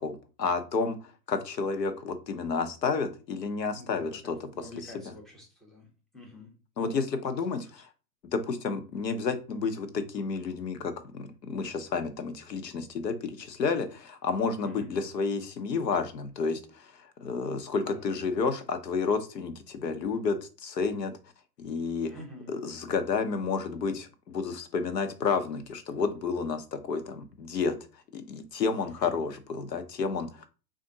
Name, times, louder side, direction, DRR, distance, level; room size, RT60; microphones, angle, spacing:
voice 1, 0.0-4.4 6.8-7.9 8.3-21.1 21.6-22.1 22.5-27.7 28.1-30.5, left 5 dB, 75° left, 8 dB, 0.9 m, -31 dB
voice 2, 3.7-5.9 6.1-6.5 6.8-7.0 7.2-7.4 14.6-14.9 17.8-18.3 22.1-22.6 28.7-29.2, left 1 dB, ahead, -2 dB, 0.5 m, -48 dB
3.5 x 2.6 x 3.8 m, 0.33 s
figure-of-eight pair, 115°, 50 cm